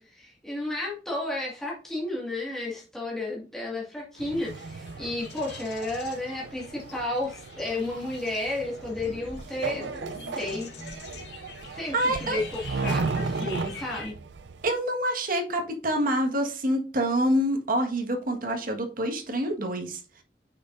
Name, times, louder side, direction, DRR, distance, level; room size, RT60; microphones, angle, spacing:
voice 1, 0.0-10.7 11.7-11.9 12.2-14.1, left 2 dB, 5° left, -5 dB, 2.0 m, -32 dB
sound 1, 4.1-14.1, left 5 dB, 75° left, 1.9 m, -45 dB
sound 2, 4.2-14.7, right 4 dB, 80° right, 0.5 m, -35 dB
sound 3, 8.8-11.2, equal, 40° left, 2.8 m, -45 dB
voice 2, 11.9-12.4 14.6-20.2, right 1 dB, 55° right, 3 dB, 1.6 m, -27 dB
8.5 x 6.1 x 2.6 m, 0.36 s
head